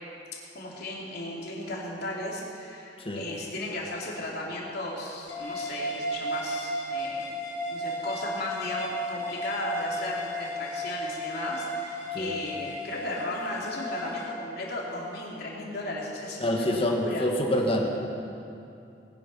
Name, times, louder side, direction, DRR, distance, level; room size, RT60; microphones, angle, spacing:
voice 1, 0.5-7.2 7.7-17.3, left 1 dB, 60° left, -4 dB, 3.3 m, -35 dB
sound 1, 5.3-14.3, equal, 85° left, 2.7 m, -34 dB
voice 2, 16.4-17.9, left 1 dB, 30° left, 0 dB, 1.9 m, -26 dB
20.5 x 10.0 x 5.7 m, 2.6 s
head